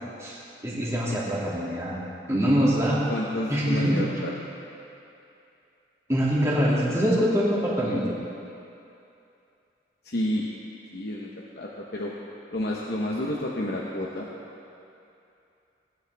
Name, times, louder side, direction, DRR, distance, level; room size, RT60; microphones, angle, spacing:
voice 1, 0.6-2.0 2.3-3.0 3.5-4.0 6.1-8.0, equal, 15° right, -7 dB, 2.5 m, -24 dB
voice 2, 3.1-4.3 10.0-10.5 10.9-12.1 12.5-14.3, left 1 dB, 55° left, -4 dB, 1.0 m, -30 dB
19.0 x 10.5 x 3.5 m, 2.7 s
head